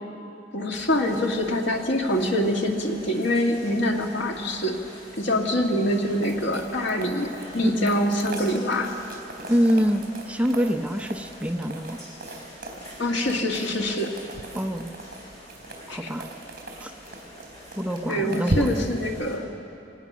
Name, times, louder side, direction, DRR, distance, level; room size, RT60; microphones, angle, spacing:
voice 1, 0.5-4.8 5.2-9.0 13.0-14.2 15.9-16.1 18.1-19.5, left 1 dB, 80° left, 2 dB, 2.0 m, -25 dB
sound 1, 0.7-19.4, equal, 20° left, 6.0 m, -46 dB
sound 2, 6.2-19.1, right 1 dB, 50° right, 3.7 m, -37 dB
voice 2, 9.5-12.0 14.5-14.9 15.9-16.3 16.8-16.9 17.8-18.7, equal, 5° right, 5 dB, 0.7 m, -25 dB
25.5 x 18.5 x 6.2 m, 2.8 s
head